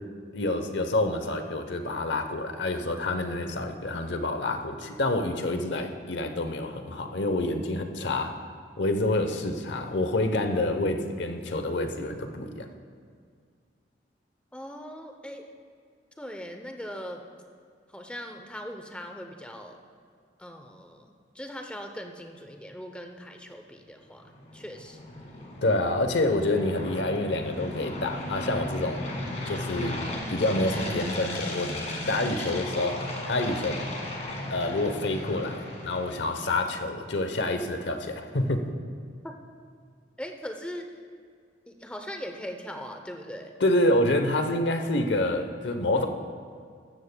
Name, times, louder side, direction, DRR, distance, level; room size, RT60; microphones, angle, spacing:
voice 1, 0.3-8.4 8.8-12.7 25.6-29.1 29.5-30.0 30.3-31.7 32.1-33.8 34.5-38.7 43.6-46.1, left 2 dB, 75° left, 6 dB, 0.8 m, -27 dB
voice 2, 14.5-15.5 16.2-17.2 17.9-19.8 20.4-21.1 21.3-25.0 39.2-39.4 40.2-40.9 41.7-43.5, equal, 5° left, 4 dB, 0.6 m, -40 dB
sound 1, 24.2-36.5, left 1 dB, 40° left, 1.7 m, -35 dB
14.5 x 13.5 x 2.2 m, 2.1 s
head